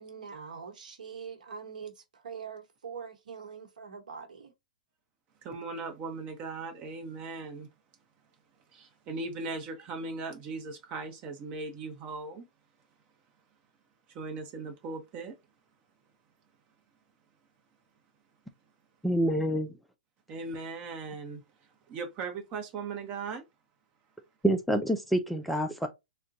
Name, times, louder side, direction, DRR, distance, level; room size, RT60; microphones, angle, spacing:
voice 1, 0.0-4.5, right 6 dB, 85° right, 1.0 m, -43 dB
voice 2, 5.4-7.7 8.7-12.5 14.1-15.4 20.3-21.4 21.9-23.4, right 3 dB, 30° right, 0.9 m, -38 dB
voice 3, 19.0-19.7 24.4-25.9, right 1 dB, ahead, 0.3 m, -27 dB
3.7 x 2.2 x 2.6 m
hypercardioid pair, 135°, 4 cm